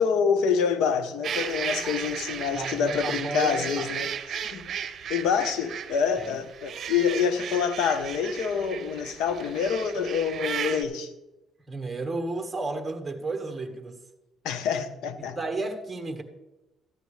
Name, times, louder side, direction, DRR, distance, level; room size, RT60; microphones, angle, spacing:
voice 1, 0.0-4.7 5.1-11.1 14.4-15.4, left 6 dB, 85° left, 0.9 m, -26 dB
sound 1, 1.2-10.8, right 8 dB, 55° right, 0.8 m, -35 dB
voice 2, 2.5-3.9 6.2-6.3 11.7-14.0 15.2-16.2, right 3 dB, 15° right, 1.5 m, -33 dB
14.0 x 10.5 x 3.3 m
cardioid pair, 105°, 0 cm